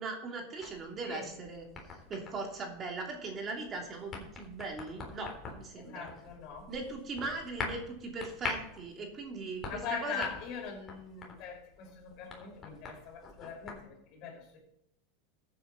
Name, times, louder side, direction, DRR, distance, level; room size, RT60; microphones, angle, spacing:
voice 1, 0.0-1.6 2.1-6.1 6.7-9.6 9.9-10.2, right 3 dB, 30° right, 1 dB, 3.0 m, -39 dB
sound 1, 0.6-13.9, left 4 dB, 25° left, 3.6 m, -45 dB
voice 2, 5.8-6.7 9.7-14.6, left 7 dB, 50° left, 1 dB, 5.2 m, -42 dB
14.5 x 8.6 x 4.2 m, 0.78 s
supercardioid pair, 130°, 0 cm